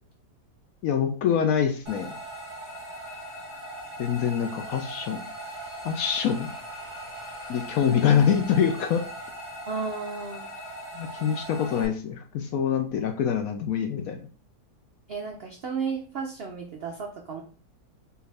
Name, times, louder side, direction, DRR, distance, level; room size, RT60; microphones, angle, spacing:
voice 1, 0.8-2.1 4.0-5.2 5.8-6.5 7.5-9.0 10.9-14.3, left 8 dB, 70° left, 5 dB, 0.9 m, -25 dB
sound 1, 1.9-11.9, right 1 dB, 30° right, 1.7 m, -39 dB
voice 2, 9.7-10.5 15.1-17.4, right 5 dB, 75° right, 1 dB, 0.5 m, -33 dB
4.6 x 2.6 x 3.3 m, 0.39 s
omnidirectional pair, 1.8 m